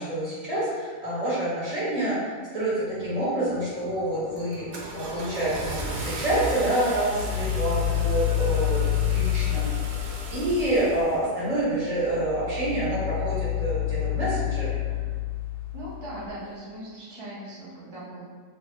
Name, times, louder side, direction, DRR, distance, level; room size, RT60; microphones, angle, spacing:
voice 1, 0.0-4.7 4.9-9.7 10.3-14.7, right 1 dB, 30° right, -9 dB, 1.1 m, -27 dB
sound 1, 2.8-15.0, equal, 80° left, 1.2 m, -44 dB
Car / Engine starting, 3.6-3.9 4.4-11.3, right 2 dB, 80° right, 1.1 m, -36 dB
sound 2, 6.9-10.6 11.9-16.3, left 13 dB, 45° left, 1.2 m, -28 dB
voice 2, 15.7-18.3, right 1 dB, 50° right, -8 dB, 0.3 m, -39 dB
3.0 x 2.5 x 3.4 m, 1.5 s
omnidirectional pair, 1.5 m